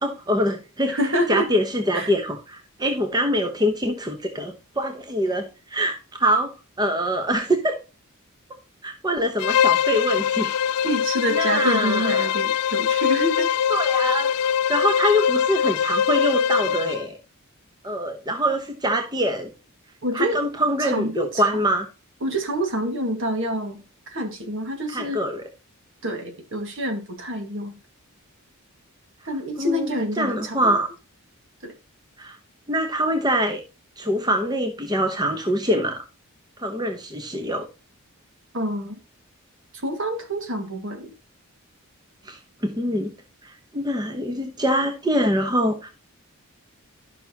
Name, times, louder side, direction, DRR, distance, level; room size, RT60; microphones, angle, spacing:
voice 1, 0.0-1.0 1.3-6.5 6.8-7.8 8.8-10.6 11.3-12.3 13.7-14.3 14.7-17.2 17.8-19.5 20.1-21.9 24.9-25.4 29.6-30.9 32.2-32.4 32.7-33.6 34.0-36.0 36.6-37.6 42.2-43.1 43.4-45.9, equal, 20° right, 1.0 m, -24 dB
voice 2, 0.9-1.5 1.9-2.1 10.8-13.5 20.0-20.4 20.8-21.4 22.2-23.8 24.1-25.2 26.0-27.8 29.3-30.8 31.6-31.7 38.5-39.0 39.8-41.1, equal, 55° right, 1.9 m, -27 dB
Bowed string instrument, 9.4-17.1, left 8 dB, 85° left, 0.4 m, -22 dB
12.5 x 5.9 x 2.9 m
head